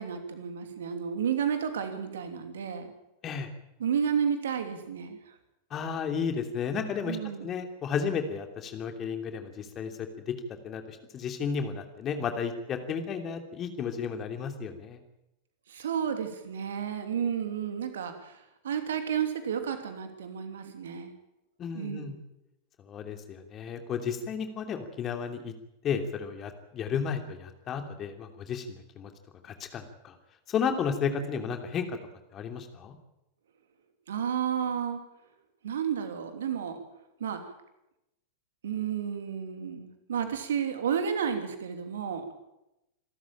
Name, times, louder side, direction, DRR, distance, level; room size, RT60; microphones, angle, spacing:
voice 1, 0.0-2.9 3.8-5.3 7.1-7.5 15.7-21.1 21.7-22.2 34.1-35.0 35.6-36.8 37.2-37.4 38.6-42.2, right 8 dB, 65° right, 7 dB, 2.9 m, -31 dB
voice 2, 5.7-10.3 10.6-15.0 21.6-22.2 22.8-25.5 25.8-29.1 29.4-30.2 30.5-32.0 32.3-32.9, left 6 dB, 30° left, 6 dB, 2.9 m, -33 dB
26.5 x 13.5 x 8.9 m, 0.90 s
figure-of-eight pair, 90°, 0 cm